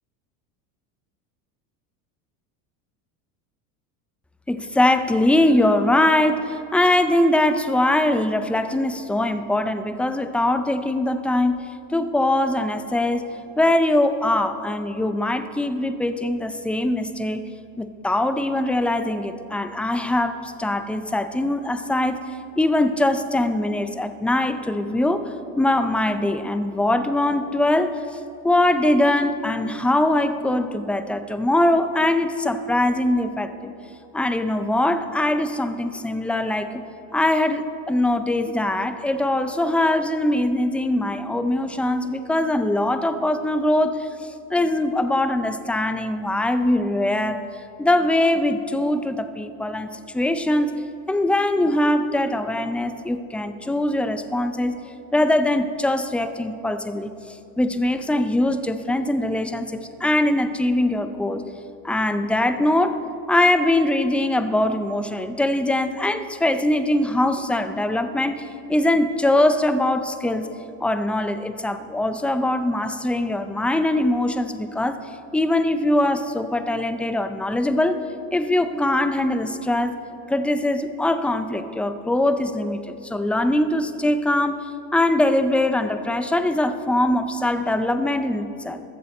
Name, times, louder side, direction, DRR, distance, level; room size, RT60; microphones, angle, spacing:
voice 1, 4.5-11.6 11.9-13.3 13.6-17.4 17.8-22.2 22.6-27.9 28.4-33.7 34.1-36.7 37.1-47.4 47.8-50.7 51.1-54.7 55.1-61.4 61.8-63.0 63.3-70.5 70.8-75.0 75.3-78.0 78.3-80.0 80.3-88.8, left 1 dB, 5° left, 9 dB, 0.4 m, -22 dB
22.5 x 7.5 x 4.1 m, 2.7 s
supercardioid pair, 110°, 45 cm